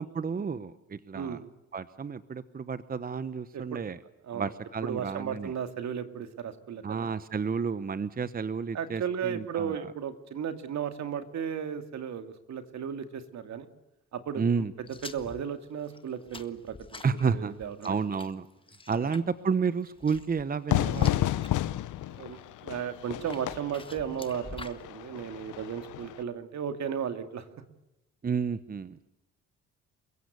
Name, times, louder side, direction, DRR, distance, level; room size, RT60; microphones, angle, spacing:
voice 1, 0.0-1.4 1.7-4.0 4.3-5.5 6.8-9.9 14.4-14.7 17.0-17.5 17.8-18.5 18.9-21.3 28.2-29.0, right 5 dB, 30° right, 15 dB, 0.9 m, -31 dB
voice 2, 4.8-7.1 8.7-13.7 14.1-14.4 15.0-18.0 18.9-19.1 22.1-27.5, right 8 dB, 65° right, 9 dB, 2.5 m, -35 dB
sound 1, 14.9-21.5 21.9-22.4 23.0-24.8, left 3 dB, 15° left, 1.6 m, -48 dB
Fire / Fireworks, 20.7-26.2, left 14 dB, 80° left, 1.0 m, -31 dB
29.0 x 16.5 x 8.2 m, 0.95 s
cardioid pair, 90°, 30 cm